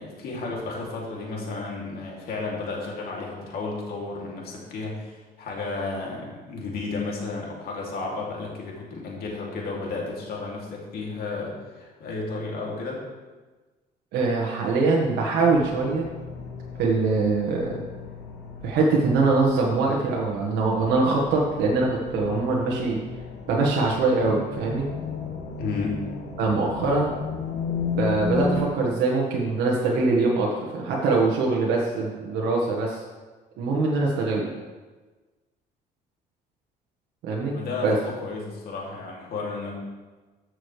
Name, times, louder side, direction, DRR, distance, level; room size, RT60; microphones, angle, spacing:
voice 1, 0.0-13.0 25.6-26.0 37.5-39.8, left 3 dB, 65° left, -2 dB, 2.7 m, -33 dB
voice 2, 14.1-16.1 16.8-17.8 18.6-23.0 23.5-24.8 26.4-27.1 27.9-33.0 33.6-34.5 37.2-37.6 37.8-38.0, right 3 dB, 80° right, -2 dB, 1.5 m, -23 dB
sound 1, 15.4-28.7, left 4 dB, 80° left, 1.6 m, -34 dB
14.5 x 6.4 x 3.3 m, 1.3 s
cardioid pair, 110°, 17 cm